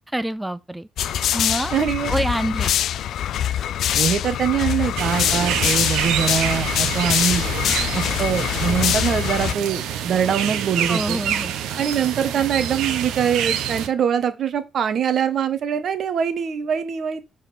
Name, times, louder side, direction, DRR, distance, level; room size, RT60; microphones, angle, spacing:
voice 1, 0.1-0.9 1.3-1.7 2.1-2.7 10.8-11.5, right 1 dB, 10° right, 0.3 m, -26 dB
sound 1, 1.0-9.5, left 10 dB, 75° left, 0.4 m, -23 dB
voice 2, 1.7-2.1 3.9-7.4 7.9-11.2 11.8-17.2, right 8 dB, 60° right, 1.1 m, -23 dB
sound 2, 5.0-13.9, right 9 dB, 90° right, 0.9 m, -27 dB
7.0 x 4.1 x 4.3 m
cardioid pair, 90°, 0 cm